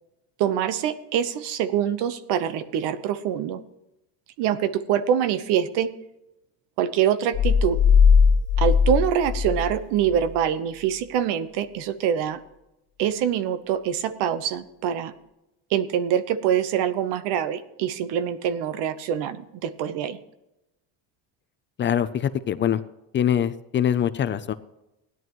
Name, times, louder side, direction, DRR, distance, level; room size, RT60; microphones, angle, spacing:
voice 1, 0.4-3.6 4.4-5.9 6.8-7.8 8.6-12.4 13.0-15.1 15.7-20.2, right 9 dB, 80° right, 13 dB, 1.1 m, -25 dB
sound 1, 7.3-10.3, left 6 dB, 55° left, 2.0 m, -19 dB
voice 2, 21.8-22.8 23.1-24.5, left 9 dB, 30° left, 12 dB, 0.5 m, -23 dB
17.0 x 11.0 x 3.1 m, 0.91 s
cardioid pair, 155°, 40 cm